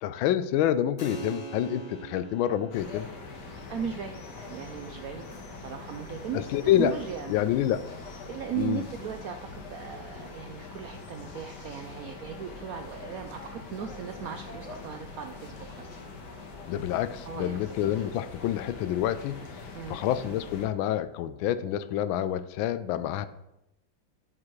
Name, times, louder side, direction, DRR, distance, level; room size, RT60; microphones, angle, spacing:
voice 1, 0.0-3.1 6.3-6.9 7.3-7.8 8.6-8.8 16.7-19.4 19.9-23.3, left 11 dB, 90° left, 14 dB, 1.4 m, -27 dB
Keyboard (musical), 1.0-11.2, right 3 dB, 40° left, 0.8 m, -47 dB
sound 1, 2.7-20.7, left 4 dB, 60° left, 1.7 m, -43 dB
voice 2, 3.7-6.5 6.8-7.3 8.2-16.0 17.2-17.8 19.7-20.0, right 8 dB, 80° right, 5 dB, 0.8 m, -37 dB
13.5 x 6.1 x 3.2 m, 0.87 s
omnidirectional pair, 2.1 m